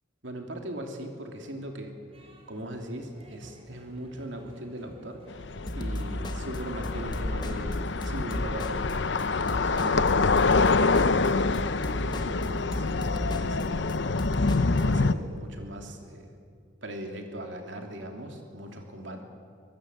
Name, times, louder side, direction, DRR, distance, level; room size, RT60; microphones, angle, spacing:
voice 1, 0.2-2.0 2.5-5.2 5.7-8.8 9.6-10.5 11.0-11.6 12.0-13.9 14.7-16.4 16.8-19.2, right 1 dB, 65° right, 3 dB, 3.1 m, -39 dB
sound 1, 2.1-11.7, equal, 30° right, 3.4 m, -52 dB
sound 2, 5.3-15.1, left 3 dB, 60° left, 0.7 m, -26 dB
sound 3, 5.7-14.8, equal, 20° left, 1.5 m, -35 dB
24.0 x 20.5 x 8.1 m, 2.3 s
head